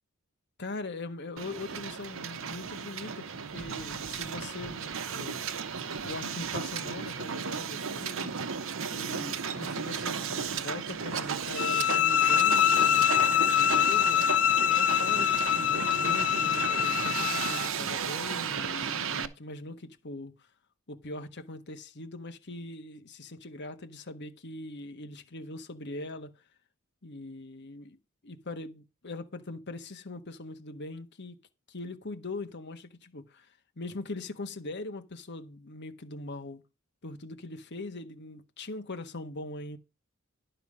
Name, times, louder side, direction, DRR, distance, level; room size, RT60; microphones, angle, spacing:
voice 1, 0.6-5.5 6.0-8.4 8.9-14.2 14.7-20.5 20.9-26.3 27.0-28.0 28.2-31.4 31.7-36.6 37.0-39.8, left 2 dB, 55° left, 1.3 m, -41 dB
Hiss, 1.4-19.3, right 6 dB, 65° right, 0.9 m, -34 dB
sound 1, 11.6-17.7, left 10 dB, 85° left, 1.1 m, -25 dB
11.0 x 5.6 x 5.5 m
head